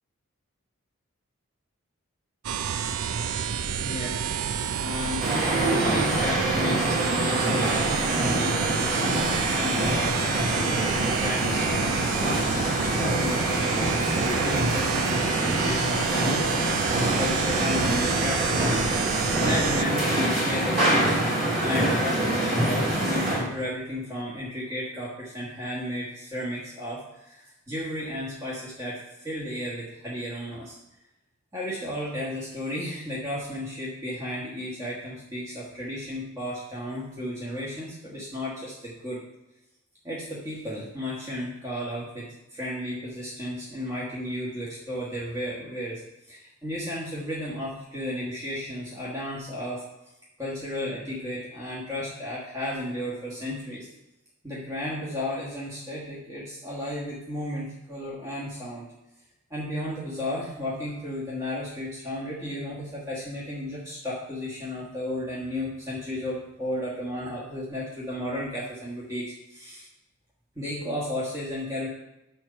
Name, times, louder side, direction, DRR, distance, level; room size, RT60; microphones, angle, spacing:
sound 1, 2.4-19.8, right 7 dB, 75° right, 0.4 m, -29 dB
voice 1, 3.8-16.5 17.2-18.6 19.0-30.8 31.5-39.2 40.0-49.8 50.4-53.9 54.4-58.9 59.5-69.9 70.5-71.9, left 1 dB, 15° right, -7 dB, 1.3 m, -34 dB
sound 2, 5.2-23.4, right 1 dB, 40° right, 2.4 m, -25 dB
6.1 x 4.5 x 6.5 m, 0.94 s
head